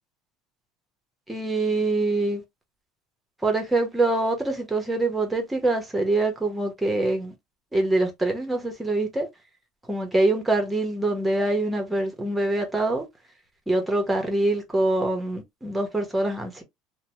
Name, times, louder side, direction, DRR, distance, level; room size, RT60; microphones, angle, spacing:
voice 1, 1.3-2.4 3.4-7.3 7.7-9.3 9.9-13.0 13.7-16.6, right 2 dB, 5° right, 0.9 m, -24 dB
2.9 x 2.1 x 2.9 m
cardioid pair, 150°, 0 cm